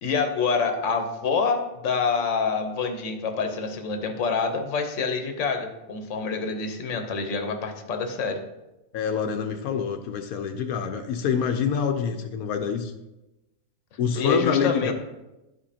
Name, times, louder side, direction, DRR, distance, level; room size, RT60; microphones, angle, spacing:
voice 1, 0.0-8.4 14.2-14.9, left 5 dB, 60° left, 5 dB, 1.2 m, -26 dB
voice 2, 8.9-12.9 14.0-14.9, left 7 dB, 90° left, 6 dB, 1.1 m, -26 dB
11.5 x 5.1 x 2.8 m, 0.97 s
omnidirectional pair, 1.5 m